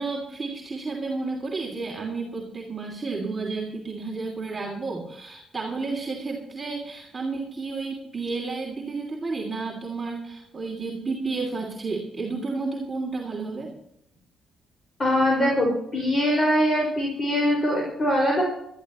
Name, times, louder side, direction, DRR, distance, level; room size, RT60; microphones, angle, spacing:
voice 1, 0.0-13.7, right 3 dB, 25° right, -2 dB, 3.0 m, -31 dB
voice 2, 15.0-18.4, equal, 35° left, -1 dB, 5.4 m, -22 dB
22.0 x 13.0 x 3.1 m, 0.77 s
cardioid pair, 90°, 0 cm